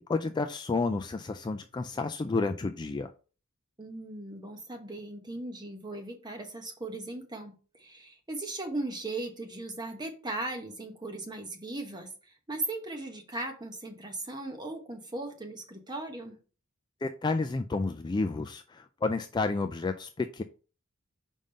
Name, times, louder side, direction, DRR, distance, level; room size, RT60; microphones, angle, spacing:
voice 1, 0.1-3.1 17.0-20.4, left 3 dB, 20° left, 7 dB, 0.3 m, -30 dB
voice 2, 3.8-16.4, right 2 dB, 20° right, 4 dB, 1.2 m, -38 dB
5.2 x 3.6 x 5.4 m, 0.37 s
head